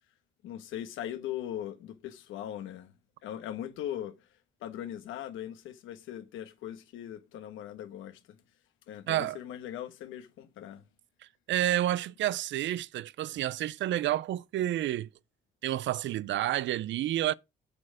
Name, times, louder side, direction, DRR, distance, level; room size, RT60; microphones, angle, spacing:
voice 1, 0.4-2.9 3.2-4.3 4.6-8.4 8.9-10.8, left 11 dB, 90° left, 1.3 m, -40 dB
voice 2, 9.1-9.4 11.5-15.1 15.6-17.3, right 13 dB, 70° right, 0.5 m, -29 dB
8.6 x 6.6 x 4.8 m
cardioid pair, 90°, 20 cm